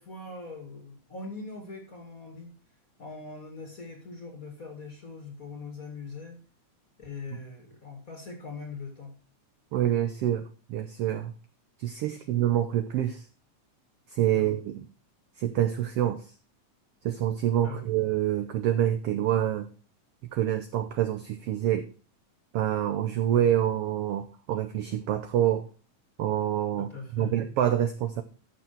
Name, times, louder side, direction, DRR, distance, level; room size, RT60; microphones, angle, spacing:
voice 1, 0.0-2.6 3.0-6.4 7.0-9.1 12.1-12.2 14.3-14.6 17.6-17.9 26.8-27.4, left 3 dB, 35° left, 4 dB, 1.9 m, -41 dB
voice 2, 9.7-11.3 11.8-13.2 14.1-14.8 15.4-16.3 17.0-19.7 20.3-21.9 22.5-25.7 26.2-28.2, right 11 dB, 80° right, 9 dB, 1.3 m, -27 dB
13.5 x 6.1 x 4.5 m, 0.36 s
omnidirectional pair, 3.6 m